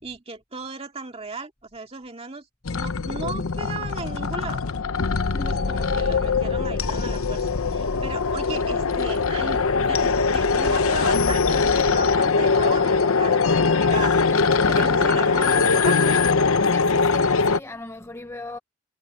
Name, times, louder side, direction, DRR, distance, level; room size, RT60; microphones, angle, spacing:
voice 1, 0.0-2.5 2.7-4.6 5.4-14.2 14.7-16.3, right 3 dB, 30° right, 2.1 m, -36 dB
sound 1, 2.7-17.6, left 4 dB, 85° left, 0.8 m, -21 dB
voice 2, 5.2-5.6 14.2-15.2 16.6-18.6, left 2 dB, 10° left, 0.7 m, -39 dB
head